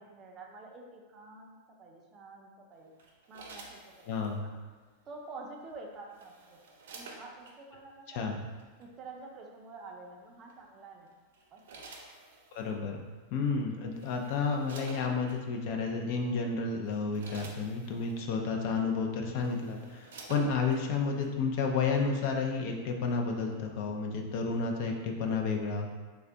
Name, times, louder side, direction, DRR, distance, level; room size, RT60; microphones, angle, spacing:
voice 1, 0.0-2.9 3.3-4.1 4.4-4.5 5.1-6.6 6.9-8.3 8.8-11.1 11.5-11.8, right 3 dB, 25° right, 0 dB, 0.5 m, -48 dB
sound 1, 3.0-4.4 5.7-7.6 8.6-8.8 10.5-10.8 11.3-12.7 13.5-13.6 13.9-15.4 16.1-16.3 16.7-18.2 18.9-19.0 19.3-20.8 21.2-21.3, right 3 dB, 85° right, 0.6 m, -51 dB
voice 2, 4.1-4.5 8.1-8.4 12.5-13.0 13.3-25.9, left 4 dB, 55° left, 2 dB, 0.5 m, -31 dB
3.3 x 2.2 x 3.8 m, 1.4 s
supercardioid pair, 150°, 0 cm